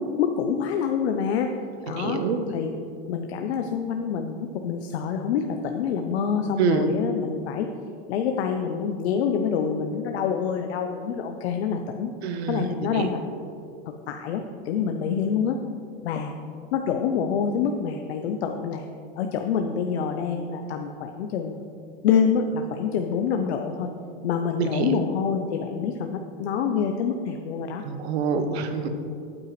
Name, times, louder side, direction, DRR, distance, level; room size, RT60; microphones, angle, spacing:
voice 1, 0.0-1.5 1.8-2.2 2.5-2.7 3.1-7.7 8.1-12.1 12.5-13.2 13.9-15.6 16.0-16.3 16.7-18.9 19.2-21.6 22.0-23.9 24.2-27.8, left 6 dB, 90° left, 5 dB, 0.7 m, -26 dB
voice 2, 1.9-2.4 6.6-6.9 12.2-12.7 12.9-13.1 24.6-25.0 27.8-28.9, right 6 dB, 85° right, 8 dB, 1.0 m, -26 dB
8.9 x 8.7 x 3.1 m, 2.5 s
supercardioid pair, 175°, 32 cm